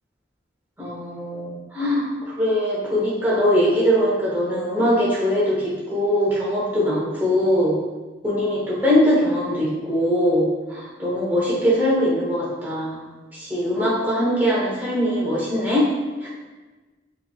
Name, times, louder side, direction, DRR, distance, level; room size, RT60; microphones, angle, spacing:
voice 1, 0.8-7.7 8.2-13.0 13.3-15.8 16.2-16.3, equal, 10° right, -7 dB, 1.0 m, -21 dB
4.7 x 3.1 x 2.3 m, 1.2 s
head